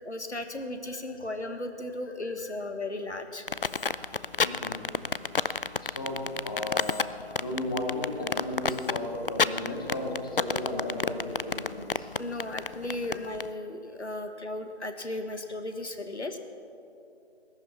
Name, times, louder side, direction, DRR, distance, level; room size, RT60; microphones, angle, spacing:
voice 1, 0.0-3.4 12.2-16.4, left 2 dB, 90° left, 7 dB, 1.5 m, -35 dB
voice 2, 2.2-2.6 4.4-4.8 5.8-12.1 12.4-12.6 13.1-13.3, left 1 dB, 20° left, -1 dB, 1.6 m, -35 dB
sound 1, 3.5-13.5, left 5 dB, 55° left, 0.5 m, -28 dB
20.0 x 10.5 x 5.9 m, 2.7 s
figure-of-eight pair, 165°, 33 cm